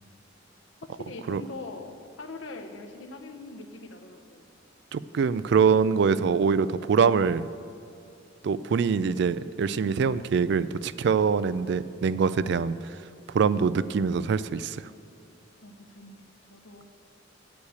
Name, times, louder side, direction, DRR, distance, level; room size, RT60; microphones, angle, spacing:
voice 1, 0.8-4.4 15.6-16.8, left 2 dB, 85° left, 5 dB, 0.9 m, -42 dB
voice 2, 4.9-7.5 8.4-12.7 13.3-14.8, right 6 dB, 60° right, 16 dB, 0.3 m, -24 dB
8.4 x 6.5 x 8.1 m, 2.5 s
head